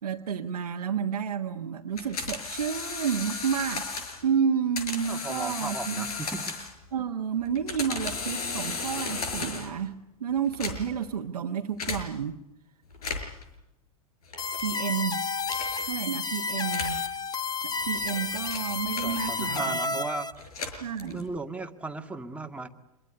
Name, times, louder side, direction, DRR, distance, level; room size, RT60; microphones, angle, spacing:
voice 1, 0.0-3.9 4.2-6.1 6.9-12.4 14.6-15.2 15.8-17.0 17.6-20.0 20.8-21.2, right 7 dB, 85° right, 1 dB, 1.4 m, -30 dB
sound 1, 2.0-4.2 4.8-6.9 7.4-9.8 10.4-11.1 11.8-12.0 12.9-13.4 14.3-14.7 15.5-15.9 16.7-17.0 17.8-19.6 20.3-21.4, left 4 dB, 80° left, 6.0 m, -35 dB
voice 2, 5.1-6.6 19.0-20.3 21.0-22.7, right 3 dB, 5° right, 3 dB, 2.1 m, -36 dB
sound 2, 14.4-20.3, left 4 dB, 20° left, 1.5 m, -31 dB
26.0 x 22.0 x 9.5 m, 0.90 s
hypercardioid pair, 100°, 19 cm